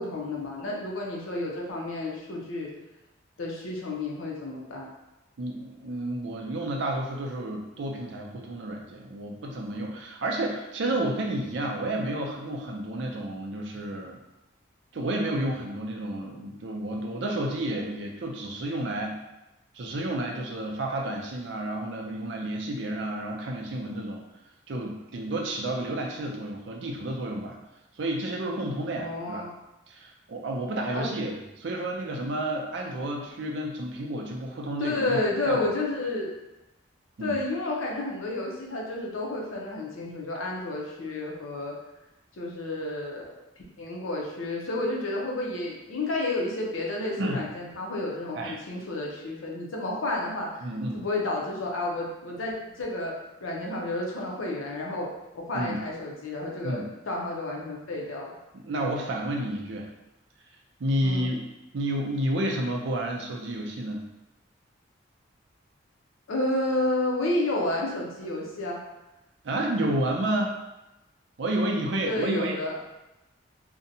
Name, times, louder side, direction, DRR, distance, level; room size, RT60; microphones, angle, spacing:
voice 1, 0.0-2.7 3.4-4.9 29.0-29.6 30.9-31.1 34.8-36.4 37.2-41.8 42.4-43.3 43.8-50.5 50.9-53.1 53.4-55.1 55.3-58.3 61.0-61.3 66.3-68.8 72.0-72.8, left 2 dB, 90° left, -2 dB, 0.6 m, -31 dB
voice 2, 5.4-14.2 14.9-19.2 19.7-24.2 24.7-27.6 28.0-29.5 29.9-35.6 37.2-37.4 47.2-47.4 48.3-48.5 50.6-51.0 55.5-55.8 56.6-56.8 58.5-59.9 60.8-61.4 61.7-64.1 69.4-70.5 71.4-72.6, right 1 dB, 65° right, 0 dB, 0.4 m, -30 dB
2.7 x 2.2 x 2.6 m, 0.95 s
head